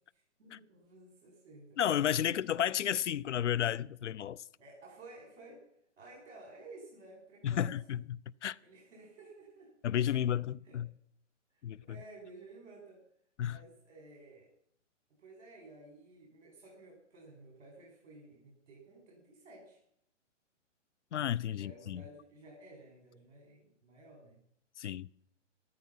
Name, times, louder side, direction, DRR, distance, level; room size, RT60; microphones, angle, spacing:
voice 1, 0.1-1.8 4.6-5.6 6.0-7.7 8.6-9.7 10.6-10.8 11.5-13.0 13.4-14.5 15.2-19.8 21.5-24.4, right 2 dB, 60° right, 5.8 m, -54 dB
voice 2, 1.8-4.4 7.4-8.0 8.4-8.6 9.8-10.9 11.6-11.8 13.4-13.6 21.1-22.0 24.8-25.1, left 10 dB, 65° left, 0.6 m, -32 dB
14.0 x 14.0 x 5.6 m
hypercardioid pair, 165°, 38 cm